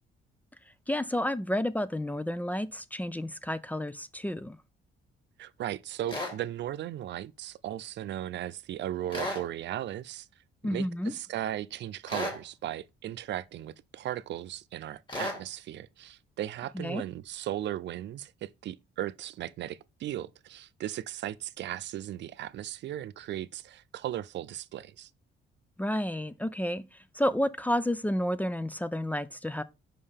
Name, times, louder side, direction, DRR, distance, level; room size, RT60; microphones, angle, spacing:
voice 1, 0.9-4.6 10.6-11.1 16.7-17.0 25.8-29.6, left 1 dB, 10° left, 0.4 m, -31 dB
voice 2, 5.4-10.3 10.6-25.1, right 12 dB, 65° right, 0.4 m, -37 dB
sound 1, 6.1-6.4 9.1-9.5 12.1-12.4 15.1-15.4, left 1 dB, 25° left, 2.3 m, -33 dB
5.4 x 5.4 x 3.4 m
cardioid pair, 90°, 20 cm